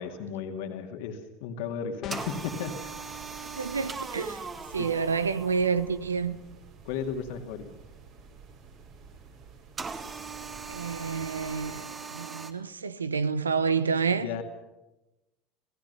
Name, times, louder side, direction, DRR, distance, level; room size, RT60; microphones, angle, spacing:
voice 1, 0.0-2.9 4.8-4.9 6.8-7.7 14.2-14.4, left 7 dB, 65° left, 2.3 m, -35 dB
sound 1, 2.0-2.6, left 12 dB, 45° left, 0.8 m, -39 dB
sound 2, 2.1-6.0 9.8-12.5, right 4 dB, 25° right, 2.1 m, -39 dB
sound 3, 2.1-11.8, right 5 dB, 55° right, 5.5 m, -51 dB
voice 2, 3.6-4.4 4.7-6.4 10.7-14.3, right 5 dB, 85° right, 0.9 m, -29 dB
29.0 x 17.0 x 6.9 m
figure-of-eight pair, 75°, 0 cm